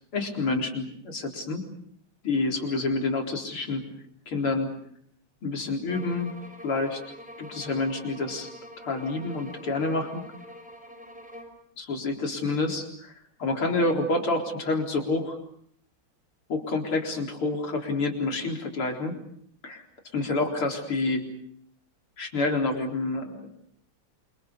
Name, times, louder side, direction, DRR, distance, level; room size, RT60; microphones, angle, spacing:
voice 1, 0.1-1.7 2.2-3.8 4.3-4.7 5.4-6.3 6.6-7.0 7.4-8.5 8.8-10.2 11.8-13.1 13.4-15.4 16.5-19.2 19.6-19.8 20.1-21.3 22.2-23.5, left 3 dB, 85° left, 3 dB, 5.0 m, -28 dB
sound 1, 5.9-11.6, equal, 5° right, 5.0 m, -45 dB
29.5 x 25.5 x 6.7 m, 0.67 s
omnidirectional pair, 2.3 m